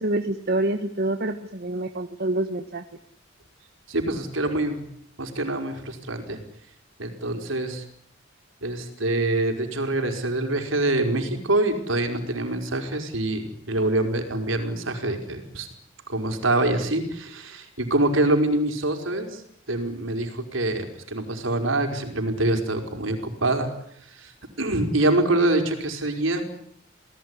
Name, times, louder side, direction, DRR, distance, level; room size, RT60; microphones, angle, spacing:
voice 1, 0.0-2.8, right 1 dB, 50° right, 7 dB, 1.4 m, -26 dB
voice 2, 3.9-4.8 5.2-6.4 7.0-7.8 8.6-15.7 16.1-19.4 19.7-23.7 24.1-24.3 24.6-26.4, right 2 dB, 75° right, 5 dB, 5.1 m, -25 dB
29.5 x 19.0 x 9.9 m, 0.72 s
head